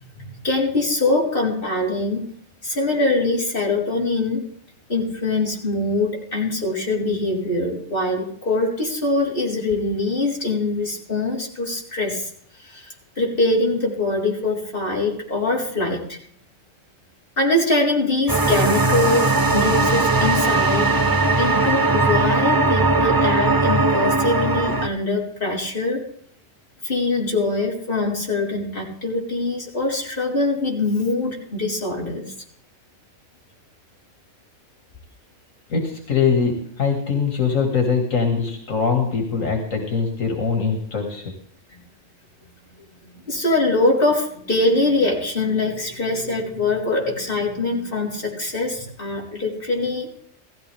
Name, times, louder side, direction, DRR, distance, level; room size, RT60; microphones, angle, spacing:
voice 1, 0.1-2.2 2.6-4.4 4.9-12.3 12.7-12.9 13.2-16.2 17.4-20.9 21.4-26.0 26.8-32.2 43.3-50.1, left 2 dB, 45° left, -2 dB, 4.5 m, -23 dB
sound 1, 18.3-24.9, right 3 dB, 20° right, 0.7 m, -19 dB
voice 2, 35.7-41.3, left 5 dB, 80° left, 2 dB, 2.6 m, -22 dB
17.0 x 15.0 x 3.5 m, 0.63 s
omnidirectional pair, 1.3 m